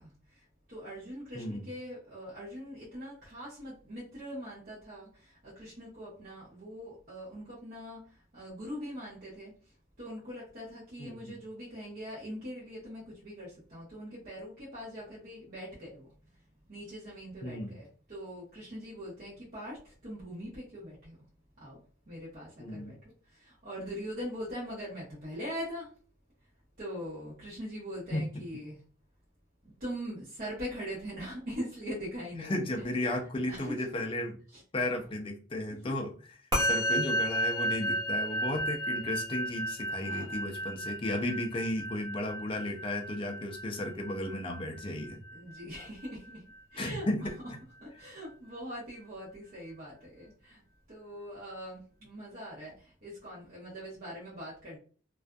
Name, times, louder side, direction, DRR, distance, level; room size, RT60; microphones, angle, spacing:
voice 1, 0.0-9.5 10.0-16.1 16.7-21.2 21.6-21.8 22.1-23.0 23.3-25.9 26.8-28.8 29.6-32.6 33.5-33.9 34.5-34.6 34.9-35.0 35.8-36.0 40.0-40.7 45.3-46.4 46.7-47.1 47.8-50.6 50.9-54.8, equal, 45° right, -7 dB, 0.9 m, -42 dB
voice 2, 11.0-11.4 17.4-17.8 22.6-23.0 28.1-28.3 32.4-34.4 34.7-45.2 46.8-47.6, left 1 dB, 25° left, 3 dB, 0.4 m, -34 dB
Musical instrument, 36.5-46.1, equal, 20° right, 1.0 m, -33 dB
2.5 x 2.4 x 2.2 m, 0.39 s
head